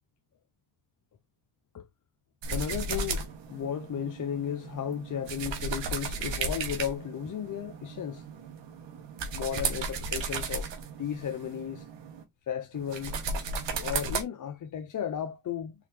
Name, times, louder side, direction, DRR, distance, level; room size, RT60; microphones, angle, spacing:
sound 1, 2.4-12.2 12.7-14.2, right 4 dB, 60° right, 1.5 m, -35 dB
voice 1, 2.5-8.3 9.3-10.7 11.0-11.9 12.5-13.2 13.7-15.7, left 9 dB, 40° left, 0.6 m, -34 dB
4.1 x 3.7 x 3.3 m
cardioid pair, 85°, 50 cm